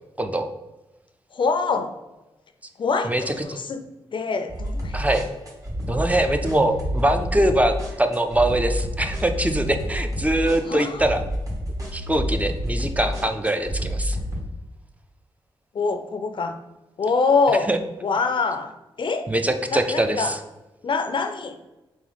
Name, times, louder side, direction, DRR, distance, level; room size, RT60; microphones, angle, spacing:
voice 1, 0.2-0.5 3.0-3.3 4.9-5.2 5.9-11.2 11.9-14.2 17.7-17.8 19.3-20.4, right 1 dB, 15° right, 6 dB, 0.4 m, -23 dB
voice 2, 1.3-1.9 2.8-3.8 4.1-5.0 10.7-11.0 15.7-16.6 17.0-17.7 18.0-18.7 19.0-19.3 19.7-20.4 20.8-21.6, left 4 dB, 55° left, 7 dB, 0.4 m, -24 dB
sound 1, 4.5-14.4, equal, 35° right, 1.3 m, -29 dB
3.6 x 3.0 x 3.9 m, 1.0 s
cardioid pair, 55°, 10 cm